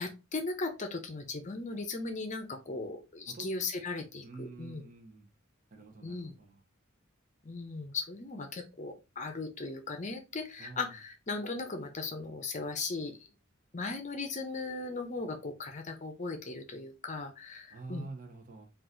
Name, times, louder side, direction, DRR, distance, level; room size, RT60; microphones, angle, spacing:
voice 1, 0.0-4.8 6.0-6.3 7.4-13.2 13.7-18.1, left 3 dB, 35° left, 6 dB, 0.7 m, -37 dB
voice 2, 4.2-5.3 5.7-6.6 10.6-10.9 17.7-18.7, right 3 dB, 40° right, 3 dB, 0.9 m, -46 dB
3.9 x 2.6 x 3.8 m, 0.27 s
head